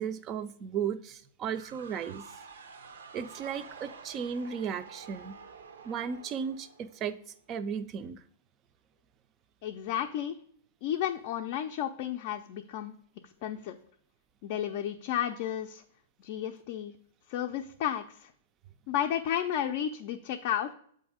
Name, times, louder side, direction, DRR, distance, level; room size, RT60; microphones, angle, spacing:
voice 1, 0.0-2.2 3.1-5.4 5.8-7.2 7.5-8.2, right 7 dB, 25° right, 12 dB, 0.4 m, -35 dB
sound 1, 1.5-7.3, right 5 dB, 90° right, 0.7 m, -49 dB
voice 2, 9.6-10.4 10.8-12.9 13.4-13.8 14.4-15.8 16.2-16.9 17.3-18.3 18.9-20.7, left 10 dB, 45° left, 3 dB, 0.4 m, -32 dB
7.8 x 2.7 x 4.9 m, 0.62 s
hypercardioid pair, 150°, 0 cm